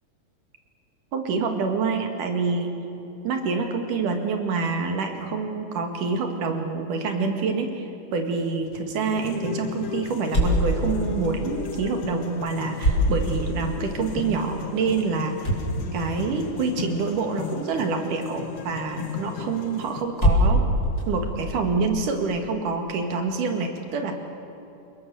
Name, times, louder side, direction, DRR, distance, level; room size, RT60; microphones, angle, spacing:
voice 1, 1.1-2.7 3.2-15.4 15.9-20.6 21.1-24.1, right 4 dB, 80° right, 4 dB, 3.6 m, -26 dB
sound 1, 8.5-22.1, equal, 30° left, 4.5 m, -28 dB
sound 2, 9.2-20.0, left 8 dB, 60° left, 2.0 m, -36 dB
29.0 x 20.0 x 7.0 m, 2.9 s
omnidirectional pair, 3.6 m